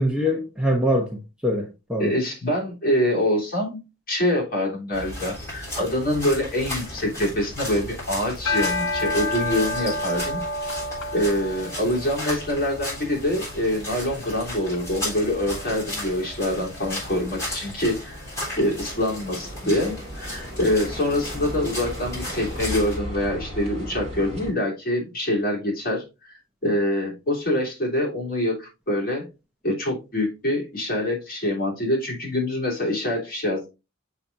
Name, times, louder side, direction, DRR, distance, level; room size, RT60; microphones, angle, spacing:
voice 1, 0.0-2.2, equal, 5° right, 0.9 m, -24 dB
voice 2, 2.0-3.8 4.1-10.4 11.1-18.3 18.6-29.3 29.6-33.7, left 1 dB, 45° left, 3.0 m, -25 dB
sound 1, 4.9-23.0, left 1 dB, 15° left, 3.7 m, -35 dB
sound 2, 8.3-17.6, left 2 dB, 85° left, 1.2 m, -32 dB
sound 3, 18.1-24.5, equal, 30° right, 2.7 m, -36 dB
7.2 x 5.9 x 2.6 m
head